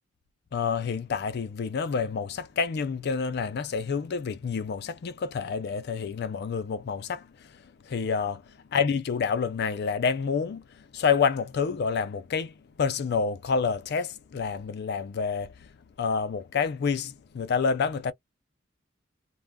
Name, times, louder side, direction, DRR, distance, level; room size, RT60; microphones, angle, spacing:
voice 1, 0.5-15.7 16.0-18.1, left 5 dB, 55° left, 0.4 m, -28 dB
2.2 x 2.1 x 3.4 m
head